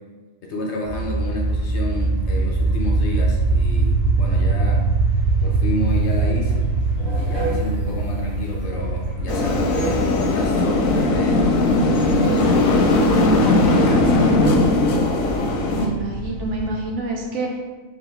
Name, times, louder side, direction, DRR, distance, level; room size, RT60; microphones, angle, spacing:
voice 1, 0.4-4.8 5.4-6.7 7.1-12.9 13.7-14.1, left 1 dB, 65° left, 0 dB, 0.9 m, -30 dB
sound 1, 0.8-16.7, right 3 dB, 30° left, 1.1 m, -23 dB
sound 2, 5.9-6.0 6.3-15.5, right 1 dB, 20° right, 0.9 m, -32 dB
sound 3, 9.3-15.9, left 2 dB, 85° left, 1.0 m, -18 dB
voice 2, 13.9-14.4 15.7-17.6, right 2 dB, 65° right, -1 dB, 1.1 m, -28 dB
3.9 x 2.8 x 4.6 m, 1.3 s
omnidirectional pair, 1.4 m